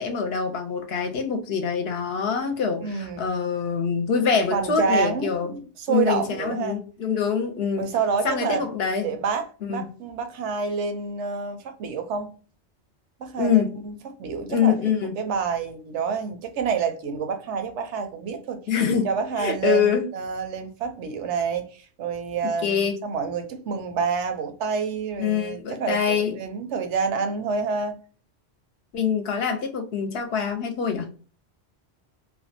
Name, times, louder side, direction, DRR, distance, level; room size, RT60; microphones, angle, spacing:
voice 1, 0.0-5.5 5.9-7.9 8.2-9.1 9.6-9.9 13.4-13.7 14.5-15.2 18.7-20.1 22.4-23.0 25.2-26.4 28.9-31.1, left 6 dB, 65° left, 0.8 m, -25 dB
voice 2, 2.8-3.3 4.5-6.8 7.8-8.7 9.0-12.3 13.2-14.9 15.2-18.6 19.0-28.0, right 5 dB, 80° right, 0.9 m, -28 dB
2.6 x 2.1 x 2.6 m
omnidirectional pair, 1.2 m